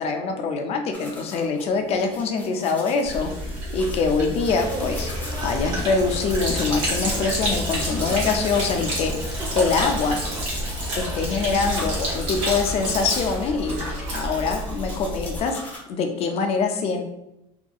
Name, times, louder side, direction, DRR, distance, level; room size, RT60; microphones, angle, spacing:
voice 1, 0.0-3.3 3.7-5.1 5.4-10.2 10.9-13.8 14.1-15.6 15.9-17.0, left 4 dB, 45° left, 4 dB, 0.4 m, -24 dB
sound 1, 0.9-15.8, left 1 dB, 10° left, 0.7 m, -41 dB
Sink (filling or washing), 3.0-15.4, equal, 60° right, 1.2 m, -29 dB
sound 2, 4.4-13.0, equal, 25° right, 0.5 m, -35 dB
2.7 x 2.6 x 2.3 m, 0.87 s
supercardioid pair, 115°, 14 cm